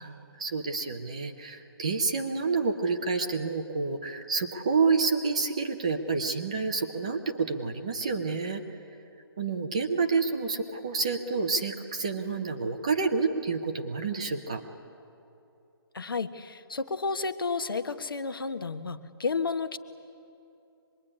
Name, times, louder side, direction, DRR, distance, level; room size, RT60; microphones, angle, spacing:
voice 1, 0.0-8.6 9.4-14.6, right 4 dB, 15° right, 4 dB, 0.6 m, -29 dB
voice 2, 15.9-19.8, left 4 dB, 60° left, 9 dB, 1.3 m, -31 dB
24.5 x 21.5 x 9.9 m, 2.8 s
hypercardioid pair, 180°, 13 cm